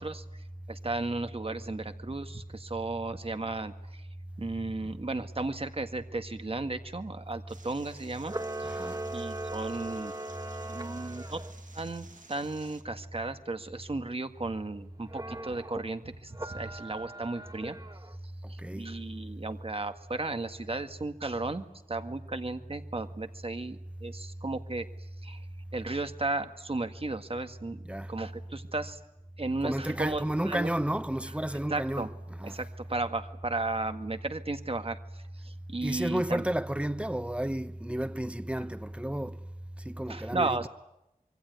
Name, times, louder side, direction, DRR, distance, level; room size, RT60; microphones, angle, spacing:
voice 1, 0.0-4.0 4.4-8.3 8.6-8.7 9.1-10.1 10.7-11.4 11.7-17.8 18.5-24.9 25.2-25.5 25.7-29.0 29.4-30.7 31.7-32.1 32.4-36.4 40.1-40.7, right 2 dB, 45° right, 1.8 m, -35 dB
sound 1, 7.5-12.8, right 3 dB, 65° right, 2.8 m, -54 dB
Camera, 8.2-11.5 15.1-15.8 16.3-18.2, right 2 dB, 25° right, 1.8 m, -39 dB
voice 2, 8.6-9.0 18.6-18.9 27.9-28.1 29.6-32.6 35.8-39.4 39.8-40.7, right 1 dB, 10° right, 1.1 m, -32 dB
26.0 x 24.0 x 9.5 m
wide cardioid pair, 65°, 14 cm